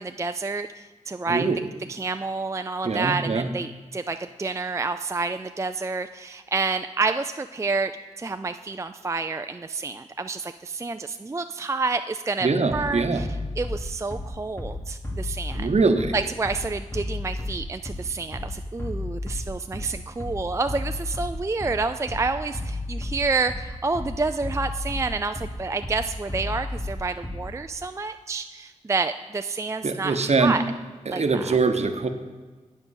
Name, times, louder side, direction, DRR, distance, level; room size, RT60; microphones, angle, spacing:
voice 1, 0.0-1.5 1.9-7.9 8.2-13.3 13.6-15.7 16.1-30.6 31.1-31.6, right 3 dB, 20° right, 8 dB, 0.3 m, -29 dB
voice 2, 1.3-1.6 2.8-3.5 12.4-13.3 15.5-16.1 29.8-30.6 31.1-32.1, right 4 dB, 55° right, 7 dB, 0.9 m, -23 dB
Bass drum, 12.7-27.7, left 1 dB, 20° left, 1.6 m, -33 dB
8.9 x 7.4 x 6.3 m, 1.3 s
cardioid pair, 65°, 13 cm